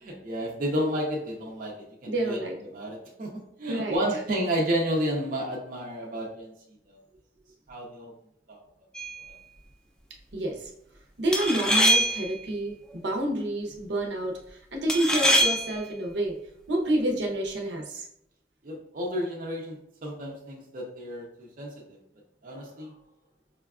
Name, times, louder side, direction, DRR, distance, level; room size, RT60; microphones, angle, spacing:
voice 1, 0.0-2.4 2.7-6.5 6.9-7.0 7.7-8.1 8.5-8.6 9.3-9.4 18.6-22.0 22.4-22.9, equal, 50° right, -2 dB, 0.6 m, -31 dB
voice 2, 2.0-2.6 3.7-4.0 10.3-10.7 11.2-12.7 13.0-16.4 16.7-18.1, right 1 dB, 85° right, 1 dB, 0.7 m, -28 dB
sound 1, 8.9-9.3 11.3-12.4 14.9-15.8, equal, 5° left, 0.4 m, -23 dB
5.0 x 2.3 x 2.3 m, 0.73 s
head